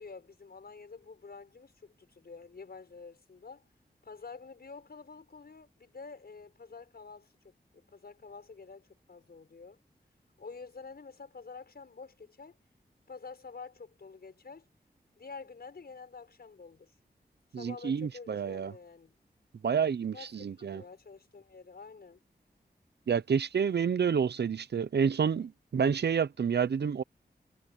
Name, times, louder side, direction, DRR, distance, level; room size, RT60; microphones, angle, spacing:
voice 1, 0.0-3.6 4.0-9.8 10.4-12.6 13.1-14.7 15.2-16.9 17.6-19.1 20.1-22.2, left 4 dB, 65° left, 5.6 m, -48 dB
voice 2, 17.5-18.7 19.6-20.8 23.1-27.0, right 7 dB, 80° right, 0.8 m, -29 dB
wide cardioid pair, 65°, 17 cm